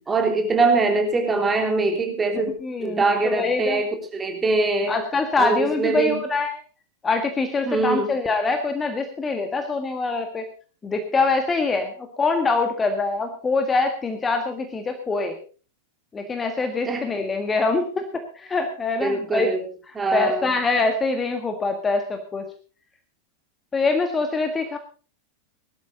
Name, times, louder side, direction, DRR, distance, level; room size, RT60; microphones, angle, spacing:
voice 1, 0.1-2.5 2.8-5.0 5.4-6.2 7.6-8.1 16.9-17.1 19.0-19.6 19.9-20.5, right 3 dB, 15° right, 4 dB, 3.3 m, -22 dB
voice 2, 2.6-3.8 4.9-6.6 7.0-10.5 10.8-15.3 16.1-19.5 19.9-22.5 23.7-24.8, left 3 dB, 15° left, 6 dB, 1.7 m, -24 dB
19.0 x 12.5 x 4.0 m, 0.38 s
figure-of-eight pair, 90°, 0 cm